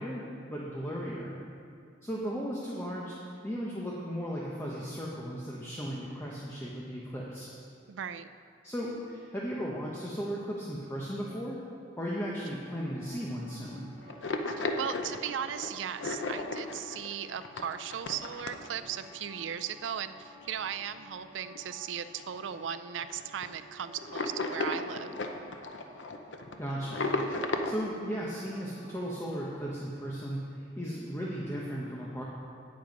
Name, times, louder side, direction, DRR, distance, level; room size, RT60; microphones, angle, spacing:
voice 1, 0.0-1.4 2.0-7.5 8.6-11.6 12.0-13.9 26.6-27.0 27.6-32.2, equal, 15° left, -5 dB, 0.8 m, -36 dB
voice 2, 7.9-8.3 14.5-25.1, right 8 dB, 90° right, 12 dB, 0.4 m, -37 dB
sound 1, 12.5-29.6, equal, 40° right, 2.0 m, -54 dB
sound 2, 14.1-19.1 19.4-19.6 20.4-20.5 20.8-20.9 21.3-21.8 22.2-22.3 22.5-22.7 23.0-23.5 24.0-27.7, left 2 dB, 85° left, 0.7 m, -34 dB
8.9 x 7.8 x 5.2 m, 2.4 s
head